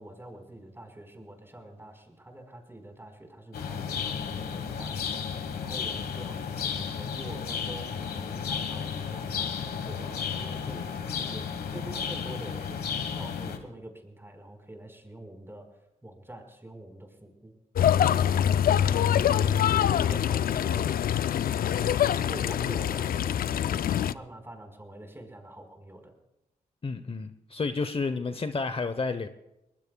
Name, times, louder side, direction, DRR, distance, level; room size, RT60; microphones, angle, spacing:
voice 1, 0.0-15.7 16.0-17.5 19.0-21.2 21.6-26.1, right 1 dB, 15° right, 3 dB, 4.4 m, -45 dB
sound 1, 3.5-13.6, left 7 dB, 90° left, 1.3 m, -33 dB
sound 2, 17.8-24.1, left 10 dB, 70° left, 0.4 m, -24 dB
voice 2, 18.8-19.3 26.8-29.3, left 4 dB, 40° left, 10 dB, 0.8 m, -31 dB
22.5 x 20.0 x 2.3 m, 0.94 s
cardioid pair, 55°, 16 cm